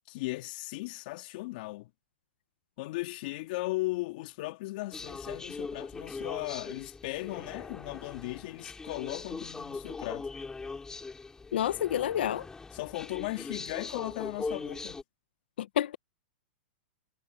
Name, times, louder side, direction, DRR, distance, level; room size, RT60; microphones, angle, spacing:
voice 1, 0.1-1.9 2.8-10.3 12.7-15.0, left 20 dB, 55° left, 2.6 m, -37 dB
sound 1, 4.9-15.0, left 4 dB, 10° left, 3.1 m, -41 dB
voice 2, 11.5-12.5 15.6-16.0, left 11 dB, 75° left, 1.3 m, -29 dB
hypercardioid pair, 130°, 6 cm